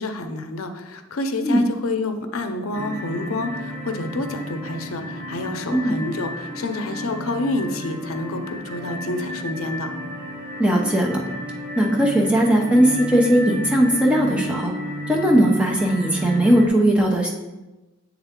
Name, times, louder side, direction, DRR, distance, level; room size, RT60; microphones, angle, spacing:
voice 1, 0.0-9.9, left 2 dB, 90° left, 7 dB, 0.6 m, -28 dB
sound 1, 2.7-16.7, equal, 70° right, 1.6 m, -33 dB
voice 2, 10.6-11.3 11.8-14.7 15.1-17.3, right 1 dB, 5° right, -1 dB, 0.7 m, -18 dB
8.0 x 3.6 x 3.6 m, 1.1 s
head